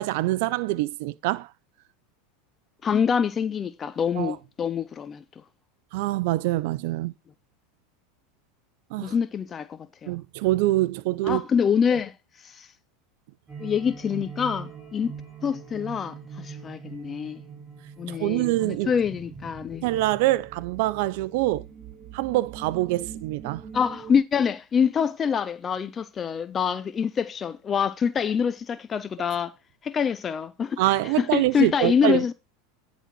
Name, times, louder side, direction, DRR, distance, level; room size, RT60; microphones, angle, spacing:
voice 1, 0.0-1.5 4.2-4.4 5.9-7.1 8.9-9.1 10.1-11.4 18.1-18.9 19.8-21.6 22.1-23.6 30.8-32.2, right 17 dB, 65° right, 0.5 m, -25 dB
voice 2, 2.8-5.2 9.0-10.1 11.2-12.7 13.6-15.1 15.4-17.4 18.0-19.8 23.7-29.5 29.8-30.8 31.2-32.3, left 7 dB, 30° left, 0.6 m, -26 dB
sound 1, 13.5-24.2, right 6 dB, 25° right, 5.4 m, -42 dB
10.0 x 4.0 x 6.1 m
hypercardioid pair, 105°, 0 cm